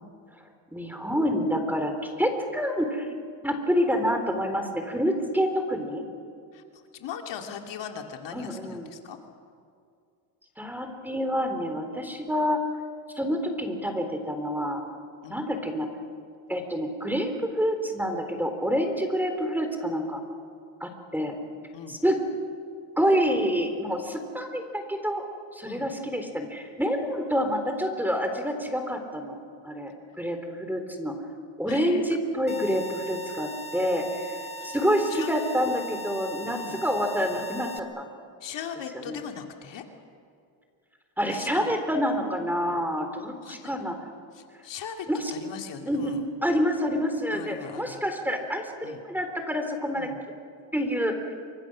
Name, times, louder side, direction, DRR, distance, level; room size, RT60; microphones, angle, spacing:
voice 1, 0.7-3.1 3.4-6.0 8.3-8.9 10.6-12.6 13.2-14.8 15.3-15.9 16.5-20.2 20.8-21.4 21.9-22.2 23.0-25.2 25.5-29.4 29.6-31.1 31.6-34.3 34.6-38.1 38.9-39.2 41.2-44.0 45.1-45.3 45.9-46.1 46.4-50.1 50.7-51.1, equal, 5° right, 5 dB, 3.7 m, -27 dB
voice 2, 6.5-9.2 15.2-15.4 21.7-22.0 25.7-25.9 31.7-32.0 34.5-34.7 35.1-35.3 36.5-36.8 38.4-39.8 41.3-41.7 43.4-43.7 44.3-46.3 47.3-48.0 48.8-49.0 49.9-50.2, left 8 dB, 65° left, 3 dB, 2.6 m, -40 dB
sound 1, 32.5-37.8, right 1 dB, 15° left, 1.7 m, -39 dB
27.5 x 25.5 x 6.3 m, 2.3 s
cardioid pair, 110°, 47 cm